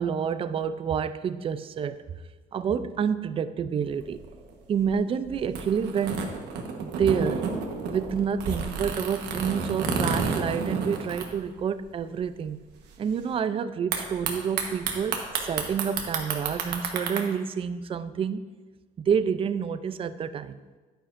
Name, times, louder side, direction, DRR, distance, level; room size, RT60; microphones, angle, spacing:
voice 1, 0.0-2.1 2.5-4.2 4.7-6.3 6.8-7.5 7.9-12.6 13.0-18.4 19.0-20.6, right 7 dB, 35° right, 13 dB, 0.4 m, -28 dB
sound 1, 3.9-11.9 12.2-12.3 12.4-12.9 13.9-17.2, right 5 dB, 80° right, 1.2 m, -31 dB
10.0 x 9.4 x 2.6 m, 1.3 s
cardioid pair, 110°, 17 cm